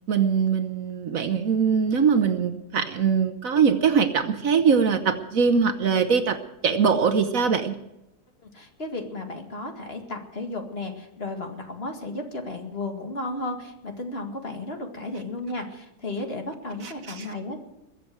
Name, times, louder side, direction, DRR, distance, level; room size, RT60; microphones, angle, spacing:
voice 1, 0.1-7.8 16.8-17.3, right 6 dB, 60° right, 9 dB, 1.3 m, -22 dB
voice 2, 8.4-17.6, left 2 dB, 40° left, 3 dB, 2.3 m, -34 dB
22.0 x 7.7 x 7.8 m, 0.89 s
omnidirectional pair, 1.7 m